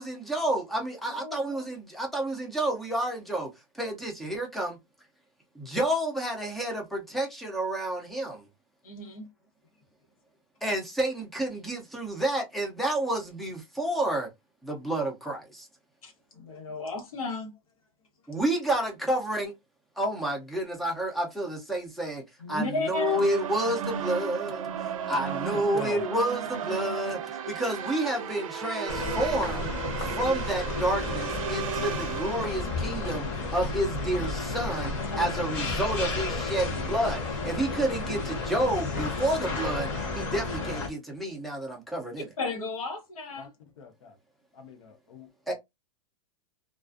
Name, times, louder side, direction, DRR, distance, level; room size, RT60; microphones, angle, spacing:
voice 1, 0.0-3.5 3.8-4.8 5.6-8.4 10.6-14.3 14.6-15.7 18.3-19.5 20.0-22.2 22.5-27.2 27.5-29.7 30.0-33.3 33.5-39.9 40.1-42.3 45.5-45.6, right 1 dB, ahead, 0.4 m, -30 dB
voice 2, 1.1-1.4 8.8-9.3 16.0-17.5 22.4-23.2 35.1-35.3 42.4-43.5, left 2 dB, 85° left, 1.1 m, -34 dB
sound 1, 22.9-33.1, right 8 dB, 70° right, 0.5 m, -35 dB
voice 3, 25.2-26.0 43.4-43.5 43.8-44.1 44.5-45.5, left 5 dB, 65° left, 0.9 m, -41 dB
sound 2, 28.9-40.9, left 3 dB, 35° left, 0.9 m, -32 dB
2.4 x 2.3 x 2.4 m
supercardioid pair, 165°, 18 cm